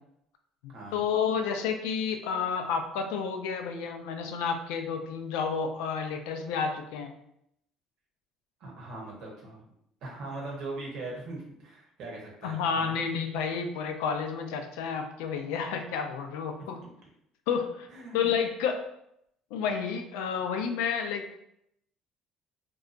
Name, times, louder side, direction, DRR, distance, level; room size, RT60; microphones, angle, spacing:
voice 1, 0.6-7.1 12.4-16.8 17.5-17.9 18.1-18.8 19.5-21.4, left 6 dB, 85° left, 5 dB, 0.3 m, -30 dB
voice 2, 8.6-9.6 10.0-12.9 16.8-16.9 17.9-18.3, right 2 dB, 70° right, -2 dB, 0.9 m, -40 dB
2.7 x 2.3 x 2.4 m, 0.75 s
supercardioid pair, 85°, 0 cm